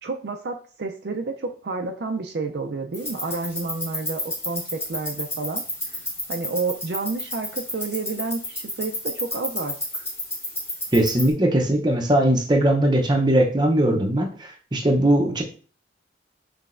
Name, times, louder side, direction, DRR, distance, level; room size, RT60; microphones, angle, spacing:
voice 1, 0.0-5.6 5.9-6.0 6.3-9.7, right 3 dB, 60° right, 4 dB, 0.4 m, -30 dB
sound 1, 2.9-11.3, left 1 dB, 15° left, 1.1 m, -32 dB
voice 2, 10.9-15.4, right 1 dB, 25° right, 2 dB, 0.6 m, -20 dB
5.8 x 3.3 x 2.5 m, 0.41 s
head